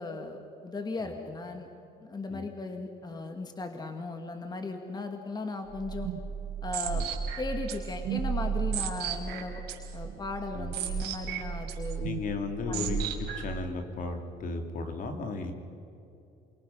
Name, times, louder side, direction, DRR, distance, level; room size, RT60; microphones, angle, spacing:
voice 1, 0.0-1.7 2.0-6.1 6.6-7.1 7.4-9.6 9.9-12.0 12.7-13.0, left 3 dB, 25° left, 5 dB, 2.1 m, -37 dB
sound 1, 5.7-13.6, right 7 dB, 80° right, 4.0 m, -34 dB
voice 2, 12.0-15.5, left 3 dB, 55° left, 5 dB, 2.8 m, -35 dB
28.0 x 24.5 x 5.8 m, 2.9 s
cardioid pair, 110°, 17 cm